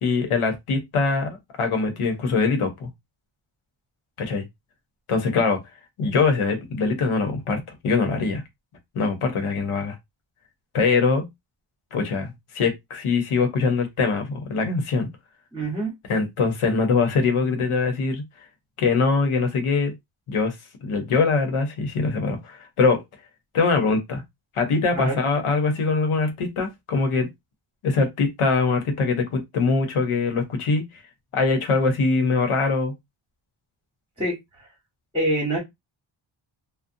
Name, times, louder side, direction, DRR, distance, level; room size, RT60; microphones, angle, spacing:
voice 1, 0.0-2.9 4.2-4.4 5.1-5.6 6.0-8.4 8.9-9.9 10.7-11.3 11.9-15.1 16.1-18.2 18.8-19.9 20.3-20.5 20.8-23.0 23.5-24.2 24.5-27.3 27.8-30.8 31.3-32.9, left 4 dB, 90° left, 0.9 m, -23 dB
voice 2, 15.5-15.9 24.9-25.2 34.2-34.7 35.1-35.6, right 1 dB, 10° right, 1.1 m, -26 dB
2.5 x 2.1 x 2.6 m
wide cardioid pair, 125°, 49 cm